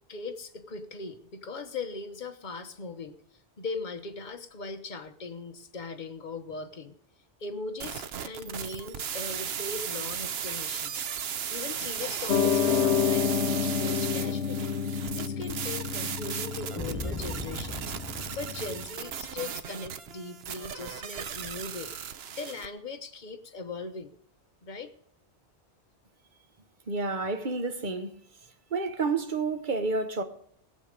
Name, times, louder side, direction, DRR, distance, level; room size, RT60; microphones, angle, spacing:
voice 1, 0.1-3.2 3.6-6.9 7.4-11.1 11.5-14.7 15.1-18.0 18.3-21.9 22.4-24.1 24.6-24.9, left 3 dB, 45° left, 1.1 m, -39 dB
sound 1, 7.8-22.7, right 8 dB, 65° right, 1.0 m, -36 dB
Piano, 12.3-18.8, left 7 dB, 80° left, 1.1 m, -29 dB
sound 2, 16.8-19.4, left 1 dB, 5° right, 0.9 m, -39 dB
voice 2, 26.9-28.1 28.7-30.2, right 3 dB, 45° right, 1.2 m, -29 dB
18.5 x 7.6 x 5.1 m
omnidirectional pair, 1.2 m